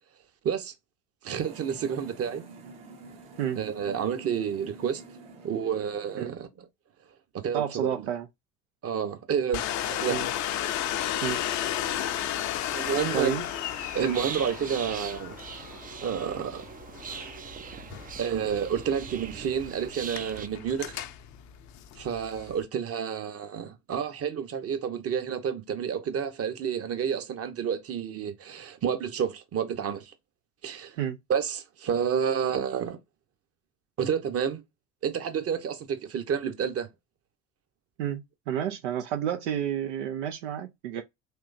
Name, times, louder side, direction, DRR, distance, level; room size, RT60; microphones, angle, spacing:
voice 1, 1.2-2.4 3.6-5.0 5.4-6.7 7.4-8.1 8.8-10.2 12.7-13.3 13.9-15.4 16.0-16.7 18.2-21.0 22.0-30.1 30.6-31.0 31.3-33.0 34.0-34.6 35.0-36.9, right 7 dB, 40° right, 1.0 m, -30 dB
sound 1, 1.3-6.3, right 4 dB, 60° right, 1.3 m, -48 dB
voice 2, 7.5-8.3 10.1-10.2 11.2-11.4 13.1-13.4 31.0-31.2 38.0-41.0, right 10 dB, 80° right, 0.5 m, -30 dB
Domestic sounds home sounds, 9.5-22.6, left 11 dB, 55° left, 0.6 m, -34 dB
sound 2, 12.8-20.5, right 7 dB, 25° right, 0.5 m, -41 dB
3.6 x 3.1 x 2.5 m
hypercardioid pair, 60°, 35 cm